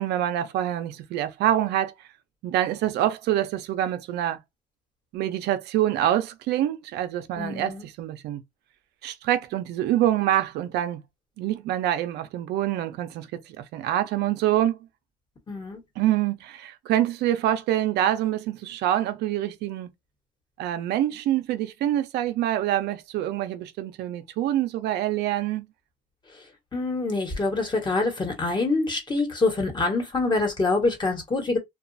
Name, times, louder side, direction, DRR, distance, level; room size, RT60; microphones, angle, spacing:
voice 1, 0.0-1.9 2.4-4.4 5.1-8.4 9.0-11.0 11.4-14.8 16.0-19.9 20.6-25.7, right 12 dB, 80° right, 0.6 m, -26 dB
voice 2, 7.4-7.9 15.5-15.8 26.7-31.6, left 3 dB, 25° left, 1.2 m, -25 dB
2.9 x 2.4 x 2.6 m
cardioid pair, 110°, 17 cm